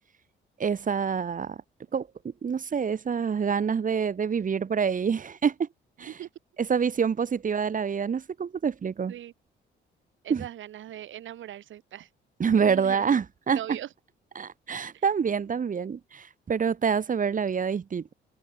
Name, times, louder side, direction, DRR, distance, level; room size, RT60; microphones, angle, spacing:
voice 1, 0.6-1.6 1.9-5.7 6.0-6.1 6.6-9.1 10.3-10.4 12.4-13.6 14.4-18.1, right 6 dB, 40° right, 2.1 m, -27 dB
voice 2, 10.2-12.1 12.7-13.1 13.5-13.9 14.9-15.0, right 12 dB, 75° right, 6.5 m, -40 dB
cardioid pair, 90°, 20 cm